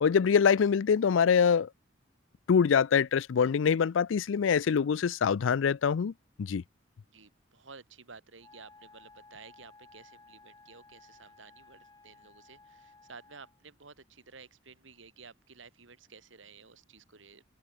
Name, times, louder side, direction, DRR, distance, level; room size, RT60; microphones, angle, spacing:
voice 1, 0.0-1.7 2.5-6.1 6.4-6.6, left 6 dB, 85° left, 0.4 m, -24 dB
voice 2, 7.1-17.4, right 4 dB, 75° right, 2.3 m, -53 dB
Wind instrument woodwind instrument, 8.4-13.6, left 3 dB, 20° left, 5.5 m, -57 dB
head